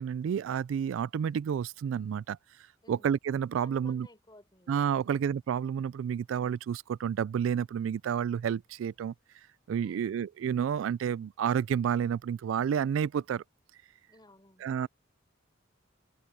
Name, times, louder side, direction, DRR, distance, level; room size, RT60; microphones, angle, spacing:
voice 1, 0.0-2.4 2.9-4.1 4.7-9.1 9.7-13.4 14.6-14.9, right 8 dB, 80° right, 0.3 m, -30 dB
voice 2, 3.6-5.2 9.8-10.1 14.1-14.7, left 1 dB, 20° left, 4.0 m, -57 dB
head